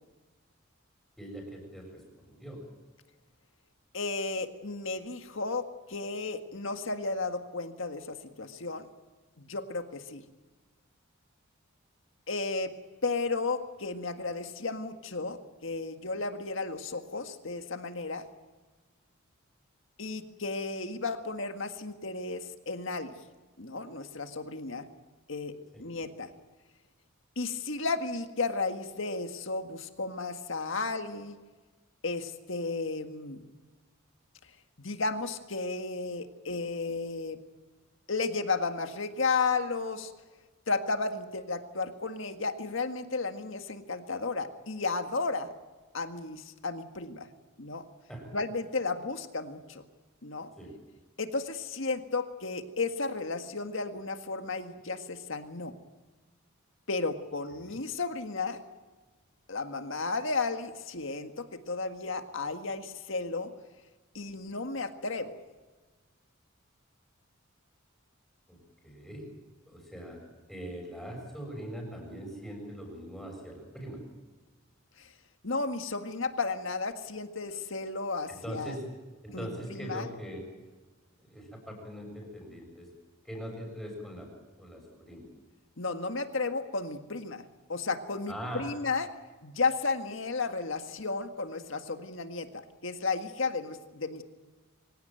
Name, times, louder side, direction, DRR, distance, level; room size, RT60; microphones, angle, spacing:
voice 1, 1.2-2.6 25.7-25.8 48.1-48.4 50.6-50.8 57.5-57.8 68.5-69.3 69.7-70.2 70.5-74.0 78.3-78.9 79.2-80.7 81.2-82.9 83.2-84.3 84.6-85.3 88.3-88.7, equal, ahead, 0 dB, 7.2 m, -42 dB
voice 2, 3.9-8.9 9.4-10.2 12.3-12.7 13.0-18.2 20.0-23.1 23.6-24.9 25.3-25.5 25.8-26.3 27.4-31.4 32.0-33.4 34.8-37.4 38.1-40.1 40.7-45.5 45.9-47.3 47.6-47.8 48.3-49.8 50.2-50.5 51.2-55.7 56.9-58.6 59.5-63.5 64.1-65.4 75.0-75.1 75.4-78.8 79.3-80.1 85.8-89.1 89.4-94.2, left 3 dB, 65° left, 7 dB, 1.8 m, -33 dB
24.5 x 17.0 x 9.2 m, 1.3 s
head